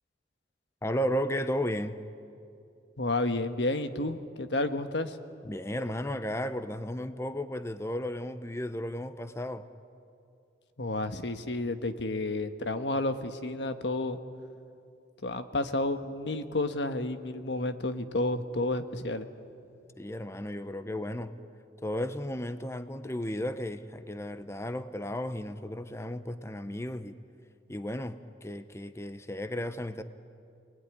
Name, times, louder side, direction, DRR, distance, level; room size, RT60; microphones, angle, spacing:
voice 1, 0.8-2.0 5.4-9.7 20.0-21.3 21.8-27.2 27.7-30.0, equal, 15° left, 11 dB, 0.7 m, -34 dB
voice 2, 3.0-5.2 10.8-14.2 15.2-19.3, left 2 dB, 80° left, 9 dB, 1.3 m, -31 dB
28.0 x 20.0 x 9.9 m, 2.6 s
head